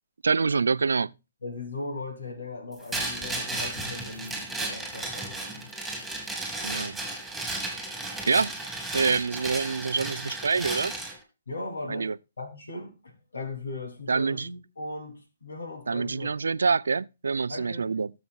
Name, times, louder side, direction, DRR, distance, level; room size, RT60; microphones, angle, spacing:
voice 1, 0.2-1.1 6.6-7.0 8.3-8.5 8.9-10.9 11.9-12.2 14.1-14.5 15.9-18.1, right 4 dB, 80° right, 0.4 m, -26 dB
voice 2, 1.4-5.7 11.5-16.5 17.5-17.9, left 2 dB, 80° left, 3.1 m, -38 dB
sound 1, 2.9-11.2, right 2 dB, ahead, 2.5 m, -34 dB
18.0 x 7.0 x 2.4 m
hypercardioid pair, 135°, 0 cm